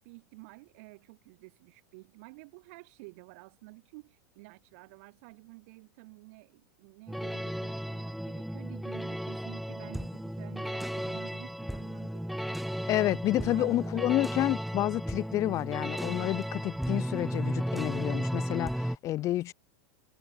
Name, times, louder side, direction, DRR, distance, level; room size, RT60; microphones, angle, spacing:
voice 1, 0.0-12.7 13.3-14.1, right 27 dB, 60° right, 7.4 m, -51 dB
sound 1, 7.1-19.0, equal, ahead, 0.8 m, -34 dB
voice 2, 12.9-19.5, left 15 dB, 35° left, 0.5 m, -29 dB
hypercardioid pair, 110°, 9 cm